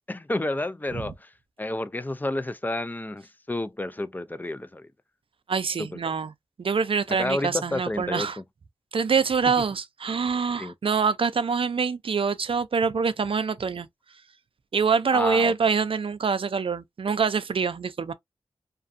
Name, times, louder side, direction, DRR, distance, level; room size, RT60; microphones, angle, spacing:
voice 1, 0.1-1.3 1.6-4.9 5.8-6.1 7.1-8.4 10.6-10.7 15.1-15.5, left 2 dB, 15° left, 0.4 m, -30 dB
voice 2, 5.5-6.3 6.6-8.4 8.9-13.9 14.7-18.1, right 5 dB, 60° right, 0.4 m, -25 dB
2.4 x 2.3 x 2.5 m
cardioid pair, 45°, 11 cm